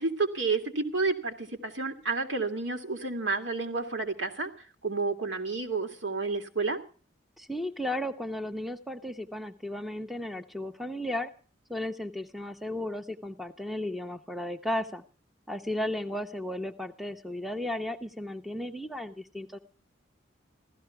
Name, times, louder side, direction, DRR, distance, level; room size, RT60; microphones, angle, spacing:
voice 1, 0.0-4.5 4.8-6.8, right 3 dB, 70° right, 5 dB, 2.3 m, -30 dB
voice 2, 7.4-11.3 11.7-15.0 15.5-19.6, left 1 dB, ahead, 6 dB, 0.7 m, -34 dB
16.0 x 14.0 x 5.8 m, 0.39 s
head